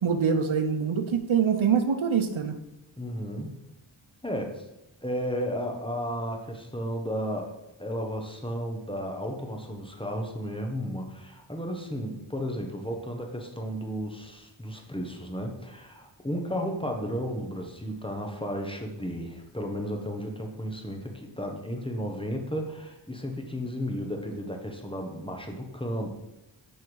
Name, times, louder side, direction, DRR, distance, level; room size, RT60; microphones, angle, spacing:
voice 1, 0.0-2.5, right 7 dB, 85° right, 8 dB, 0.8 m, -24 dB
voice 2, 3.0-3.6 4.2-4.6 5.0-7.5 7.8-26.1, equal, 10° left, 2 dB, 1.2 m, -33 dB
7.8 x 3.6 x 6.2 m, 0.90 s
wide cardioid pair, 65°, 47 cm